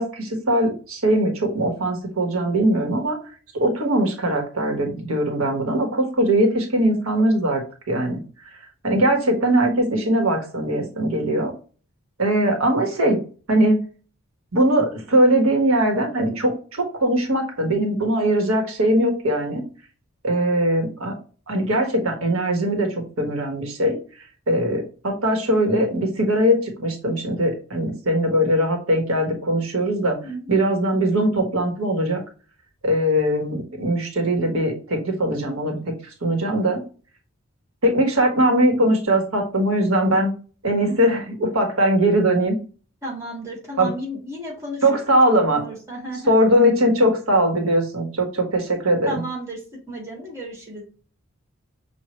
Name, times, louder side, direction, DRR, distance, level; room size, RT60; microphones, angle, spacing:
voice 1, 0.0-3.2 3.5-7.6 7.9-8.2 8.8-11.5 12.2-13.2 13.5-13.8 14.5-19.6 20.2-21.1 21.5-22.9 23.2-24.0 24.5-30.2 30.5-32.2 32.8-35.9 36.2-36.8 37.8-40.3 40.6-42.6 43.8-43.9 44.8-45.6 46.3-49.2, right 1 dB, 85° right, 2 dB, 1.4 m, -20 dB
voice 2, 30.2-30.6 40.9-41.0 43.0-44.8 45.5-46.4 49.1-50.8, right 1 dB, 15° right, -2 dB, 1.9 m, -33 dB
6.3 x 2.5 x 3.1 m, 0.37 s
head